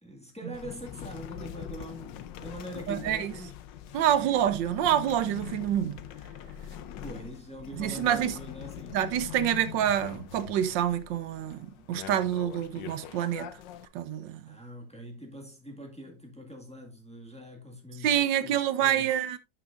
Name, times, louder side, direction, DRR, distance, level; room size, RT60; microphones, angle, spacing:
voice 1, 0.0-3.5 3.9-4.2 6.7-9.0 14.5-19.2, equal, 5° left, 1.6 m, -43 dB
sound 1, 0.5-13.9, left 9 dB, 80° left, 1.4 m, -43 dB
voice 2, 2.9-3.3 3.9-6.0 7.8-8.4 8.9-13.5 13.9-14.4 18.0-19.4, right 10 dB, 80° right, 1.4 m, -27 dB
11.0 x 6.2 x 2.5 m
omnidirectional pair, 1.9 m